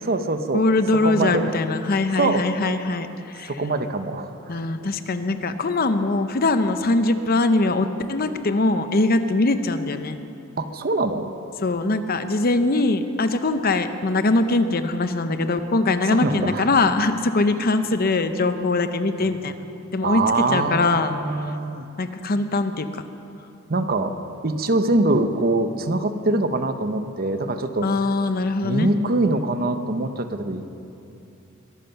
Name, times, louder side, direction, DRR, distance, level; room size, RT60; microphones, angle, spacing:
voice 1, 0.0-0.6 1.0-1.5 2.2-2.4 3.5-4.6 10.6-11.3 16.1-16.7 19.2-19.3 20.0-21.9 23.7-24.1 24.4-27.9 28.6-30.6, right 2 dB, 45° right, 9 dB, 0.8 m, -23 dB
voice 2, 0.5-3.5 4.5-10.2 11.6-19.5 19.9-20.2 20.5-21.1 22.0-22.9 27.8-28.9, left 2 dB, 45° left, 9 dB, 0.8 m, -22 dB
22.0 x 11.0 x 5.8 m, 2.8 s
head